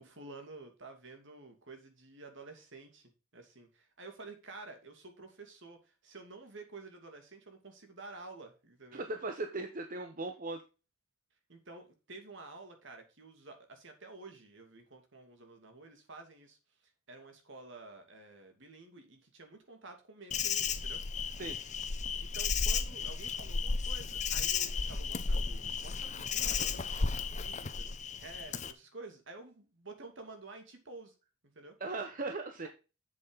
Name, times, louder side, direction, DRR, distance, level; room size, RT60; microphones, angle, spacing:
voice 1, 0.0-9.0 11.5-16.6 17.1-21.0 22.2-31.1 31.5-31.7, right 3 dB, 60° right, 5 dB, 2.7 m, -51 dB
voice 2, 8.9-10.6 21.4-21.6 31.8-32.7, right 3 dB, 40° right, 6 dB, 1.0 m, -38 dB
Insect, 20.3-28.7, left 5 dB, 35° left, 0.8 m, -34 dB
8.1 x 7.2 x 4.1 m, 0.31 s
head